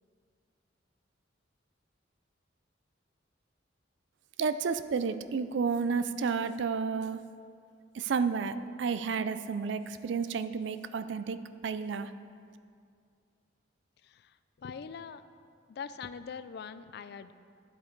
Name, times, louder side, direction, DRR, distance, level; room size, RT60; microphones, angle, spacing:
voice 1, 4.4-7.2 7.9-12.1, right 5 dB, 65° right, 12 dB, 0.4 m, -31 dB
voice 2, 14.0-15.2 15.7-17.3, left 6 dB, 55° left, 13 dB, 0.3 m, -43 dB
11.0 x 8.1 x 3.9 m, 2.3 s
head